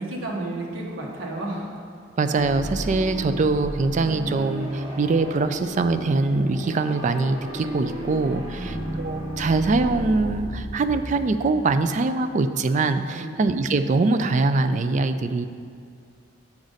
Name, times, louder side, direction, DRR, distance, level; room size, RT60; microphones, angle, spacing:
voice 1, 0.0-1.8 8.5-9.0 13.1-13.3, right 1 dB, 85° right, -2 dB, 1.4 m, -32 dB
voice 2, 2.2-15.5, right 3 dB, 40° right, 10 dB, 0.3 m, -23 dB
sound 1, 2.3-12.0, equal, 20° right, 1.2 m, -33 dB
7.1 x 6.4 x 4.0 m, 2.4 s
head